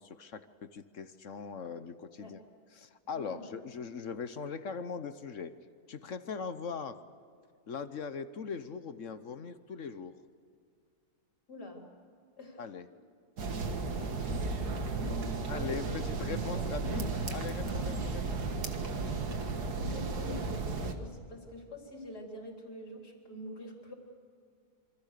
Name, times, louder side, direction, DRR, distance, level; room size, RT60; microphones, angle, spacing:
voice 1, 0.0-2.4 2.8-5.5 5.9-7.0 7.7-10.2 12.6-12.9 15.5-18.4, left 5 dB, 55° left, 11 dB, 1.2 m, -40 dB
voice 2, 3.1-3.6 11.5-11.8 12.4-12.6 12.9-13.0 13.7-16.0 16.5-16.8 18.9-23.9, left 1 dB, 70° left, 0 dB, 4.5 m, -47 dB
sound 1, 13.4-20.9, right 3 dB, 70° right, 2.2 m, -34 dB
27.0 x 25.5 x 6.7 m, 2.2 s
omnidirectional pair, 1.8 m